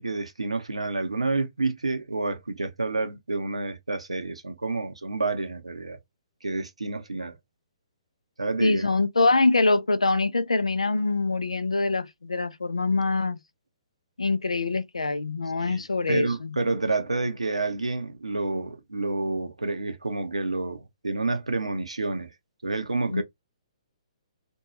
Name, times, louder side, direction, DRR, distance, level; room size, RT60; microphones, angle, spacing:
voice 1, 0.0-6.0 6.4-7.4 8.4-8.8 15.6-15.8 16.1-22.3 22.6-23.2, right 3 dB, 85° right, 0.6 m, -29 dB
voice 2, 8.6-13.4 14.2-16.6 23.1-23.2, left 3 dB, 85° left, 0.4 m, -24 dB
2.6 x 2.2 x 2.9 m
figure-of-eight pair, 130°, 3 cm